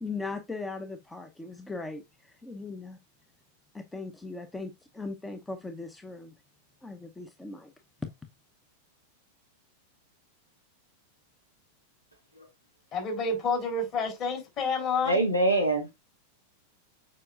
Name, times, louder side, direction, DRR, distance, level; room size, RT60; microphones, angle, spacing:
voice 1, 0.0-3.0 3.7-6.3 6.8-7.7, left 3 dB, 10° left, 0.8 m, -39 dB
voice 2, 12.9-15.1, left 3 dB, 40° left, 3.8 m, -29 dB
voice 3, 14.8-15.9, right 2 dB, 90° left, 1.7 m, -25 dB
7.5 x 5.4 x 2.4 m
figure-of-eight pair, 90°, 0 cm